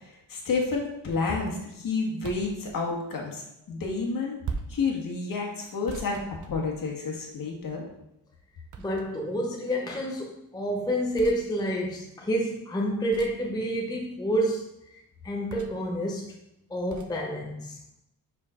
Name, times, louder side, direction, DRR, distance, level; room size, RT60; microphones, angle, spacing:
voice 1, 0.3-4.4 4.7-6.2 6.5-7.9, left 4 dB, 50° left, 0 dB, 1.5 m, -30 dB
sound 1, 2.2-2.6 4.4-4.9 5.9-7.0 8.7-9.3 11.1-11.4 13.1-13.5 15.5-15.9 16.9-17.1, right 5 dB, 45° right, 0.7 m, -39 dB
voice 2, 8.8-14.7 15.2-16.3 16.7-17.8, equal, 10° left, 0 dB, 0.5 m, -29 dB
5.2 x 4.8 x 5.0 m, 0.83 s
wide cardioid pair, 170°, 43 cm